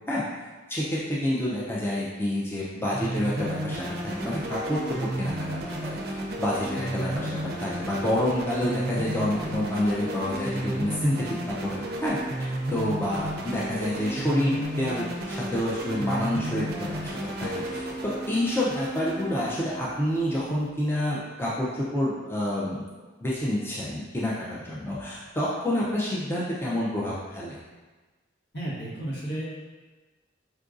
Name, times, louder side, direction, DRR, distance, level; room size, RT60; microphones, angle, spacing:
voice 1, 0.7-17.1 17.4-22.9 23.2-27.6, left 1 dB, 10° left, -7 dB, 0.4 m, -28 dB
sound 1, 2.9-20.7, right 1 dB, 55° right, 0.4 m, -33 dB
voice 2, 28.5-29.5, right 1 dB, 65° left, -6 dB, 1.1 m, -32 dB
4.5 x 2.5 x 2.4 m, 1.2 s
head